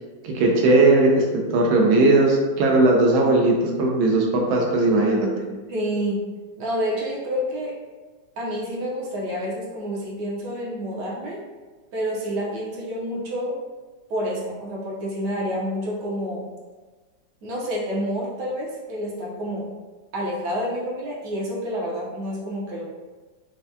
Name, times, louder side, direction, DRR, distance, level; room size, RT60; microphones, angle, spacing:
voice 1, 0.2-5.3, right 2 dB, 85° right, 0 dB, 1.5 m, -18 dB
voice 2, 5.7-6.3 6.6-7.8 8.4-11.4 11.9-13.6 14.1-16.5 17.4-19.7 20.1-22.8, equal, 65° right, -4 dB, 1.2 m, -28 dB
4.6 x 2.1 x 2.7 m, 1.3 s
omnidirectional pair, 2.1 m